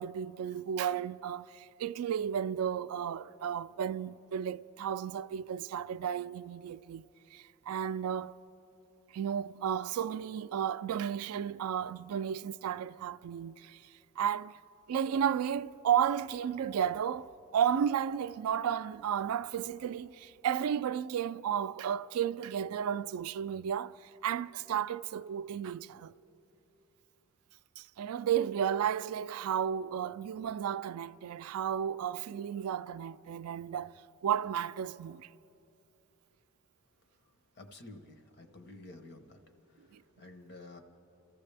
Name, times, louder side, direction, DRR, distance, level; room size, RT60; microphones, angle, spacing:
voice 1, 0.0-7.0 7.3-8.4 9.1-14.6 14.9-26.1 27.8-33.9 34.2-35.3 39.9-40.0, right 8 dB, 85° right, 0.3 m, -33 dB
voice 2, 37.6-39.4 39.7-39.9 40.2-40.8, left 2 dB, 50° left, 1.0 m, -51 dB
29.5 x 14.0 x 3.4 m
head